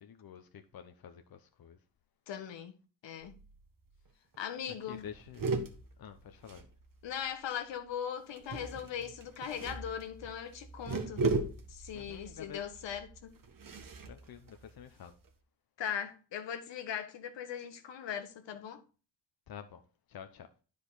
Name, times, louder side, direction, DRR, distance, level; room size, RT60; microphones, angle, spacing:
voice 1, 0.0-1.8 4.7-5.5 6.0-6.6 11.9-12.6 14.1-15.1 19.5-19.8 20.1-20.5, left 8 dB, 55° left, 1.0 m, -49 dB
voice 2, 2.3-3.3 4.4-5.1 7.0-11.3 11.7-13.3 15.8-18.8, left 8 dB, 80° left, 1.4 m, -39 dB
sound 1, 3.2-3.7 4.0-4.1 4.3-4.6 4.9-7.3 8.4-15.3, right 3 dB, 50° right, 1.6 m, -38 dB
9.7 x 5.2 x 4.1 m
cardioid pair, 75°, 44 cm